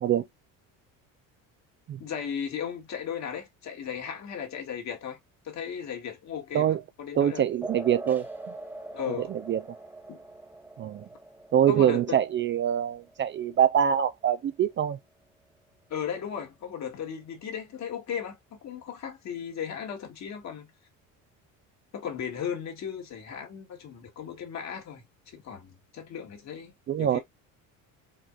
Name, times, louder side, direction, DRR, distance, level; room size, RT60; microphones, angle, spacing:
voice 1, 2.0-5.2 5.4-7.4 8.9-9.4 10.1-10.2 11.7-12.2 15.9-20.7 21.9-27.2, left 8 dB, 50° left, 2.0 m, -36 dB
voice 2, 7.2-8.2 9.3-9.6 10.8-11.0 11.5-15.0 26.9-27.2, right 10 dB, 35° right, 0.4 m, -24 dB
sound 1, 7.6-14.6, right 2 dB, 5° right, 1.1 m, -43 dB
5.0 x 3.7 x 2.3 m
cardioid pair, 120°, 35 cm